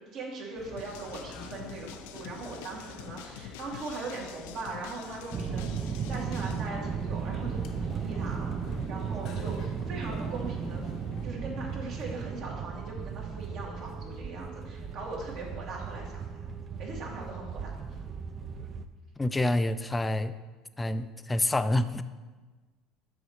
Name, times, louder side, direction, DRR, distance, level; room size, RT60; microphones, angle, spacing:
voice 1, 0.0-10.9 11.2-16.5 16.8-17.8, right 3 dB, 60° right, -2 dB, 2.2 m, -40 dB
sound 1, 0.6-11.3, left 5 dB, 60° left, 0.9 m, -48 dB
sound 2, 0.8-6.7, left 10 dB, 85° left, 0.4 m, -47 dB
sound 3, 5.3-18.9, right 6 dB, 40° right, 0.5 m, -35 dB
voice 2, 19.2-20.3 20.8-22.0, left 1 dB, 15° left, 12 dB, 0.4 m, -27 dB
6.7 x 4.2 x 6.4 m, 1.3 s
supercardioid pair, 95°, 0 cm